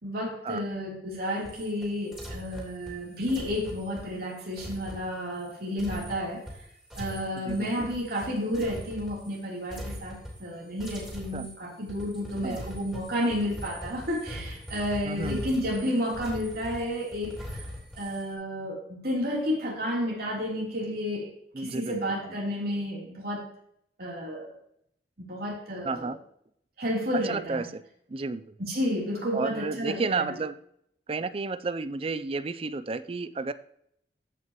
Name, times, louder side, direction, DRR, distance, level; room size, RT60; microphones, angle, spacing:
voice 1, 0.0-6.4 7.0-17.6 18.0-21.3 21.6-23.4 24.0-24.5 25.2-26.1 26.8-27.6 28.6-30.3, equal, 60° right, -3 dB, 3.5 m, -31 dB
sound 1, 1.1-9.4 9.7-10.5 10.8-18.3, equal, 5° right, 3.2 m, -41 dB
voice 2, 7.4-7.9 11.3-11.5 12.4-12.6 15.1-15.4 21.5-22.0 22.2-22.3 25.8-26.2 27.2-27.8 28.1-28.6 29.3-30.6 31.1-33.5, right 3 dB, 30° right, 13 dB, 0.4 m, -32 dB
14.5 x 5.8 x 3.0 m, 0.72 s
head